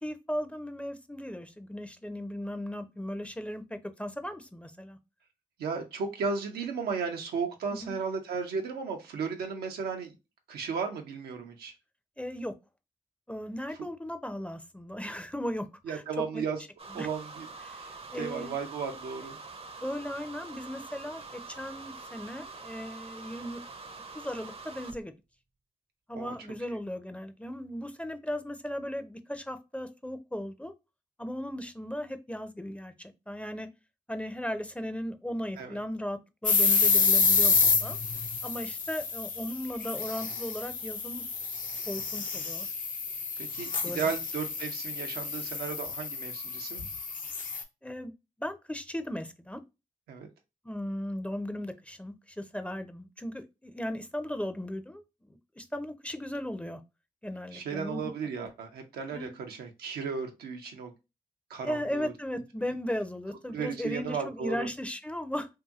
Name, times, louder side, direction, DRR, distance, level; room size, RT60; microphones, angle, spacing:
voice 1, 0.0-5.0 7.7-7.9 12.2-12.5 13.3-16.0 16.3-16.4 17.0-17.1 17.6-17.8 18.1-18.5 19.8-21.2 21.6-23.6 24.1-25.1 26.1-30.7 31.2-33.7 34.1-38.0 38.4-41.3 41.9-42.7 43.8-44.1 47.8-48.1 48.4-49.6 50.6-56.8 57.2-58.1 59.1-59.3 61.6-65.5, equal, 10° left, 0.5 m, -37 dB
voice 2, 5.6-10.1 10.5-11.7 15.9-16.6 16.9-17.5 17.7-19.4 26.1-26.3 35.6-35.8 43.4-46.9 50.1-50.3 57.5-60.9 61.5-62.1 63.5-64.7, right 5 dB, 85° right, 0.6 m, -35 dB
sound 1, 16.8-25.0, right 3 dB, 40° right, 0.5 m, -45 dB
sound 2, 36.4-47.6, left 5 dB, 60° left, 0.6 m, -29 dB
2.7 x 2.6 x 2.4 m
supercardioid pair, 40°, 16 cm